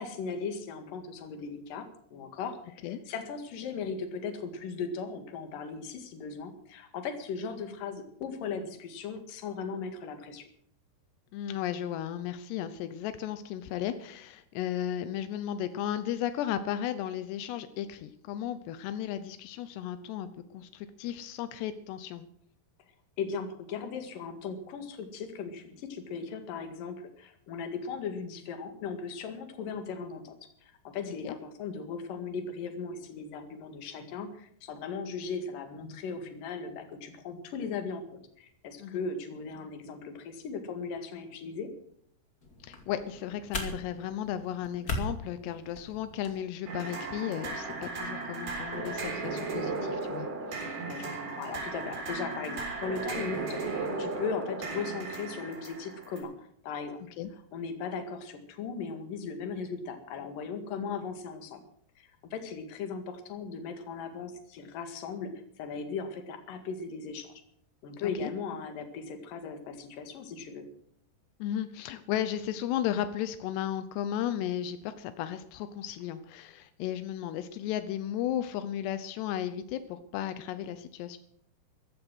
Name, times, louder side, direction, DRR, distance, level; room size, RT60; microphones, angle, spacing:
voice 1, 0.0-10.5 23.2-30.3 30.6-41.7 50.8-57.0 57.5-61.6 62.0-65.3 65.6-67.3 67.8-70.6, left 5 dB, 60° left, 7 dB, 3.4 m, -38 dB
voice 2, 11.3-22.3 31.0-31.4 38.8-39.0 42.6-50.8 57.2-57.3 68.0-68.3 71.4-81.2, left 11 dB, 85° left, 12 dB, 3.0 m, -35 dB
sound 1, 42.4-46.4, left 1 dB, 30° left, 2.2 m, -39 dB
sound 2, 46.7-56.2, right 3 dB, 60° right, 5.7 m, -36 dB
15.0 x 13.5 x 6.2 m, 0.68 s
omnidirectional pair, 4.8 m